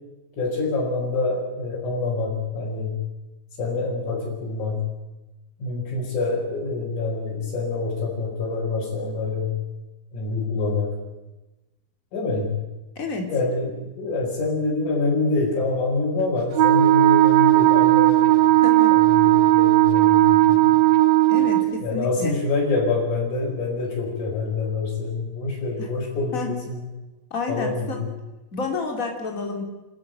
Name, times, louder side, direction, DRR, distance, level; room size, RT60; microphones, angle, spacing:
voice 1, 0.3-3.0 3.6-4.8 5.6-9.5 10.1-10.9 12.1-12.5 13.3-18.5 18.9-20.7 21.8-26.8 27.5-28.1, left 3 dB, 55° left, -5 dB, 6.3 m, -26 dB
voice 2, 12.9-13.3 18.6-18.9 21.3-22.4 25.8-25.9 26.3-26.5 27.3-28.0 28.5-29.6, left 4 dB, 25° left, 2 dB, 3.2 m, -29 dB
Wind instrument woodwind instrument, 16.5-21.7, right 17 dB, 70° right, 1.7 m, -16 dB
27.5 x 13.0 x 9.1 m, 1.0 s
omnidirectional pair, 4.3 m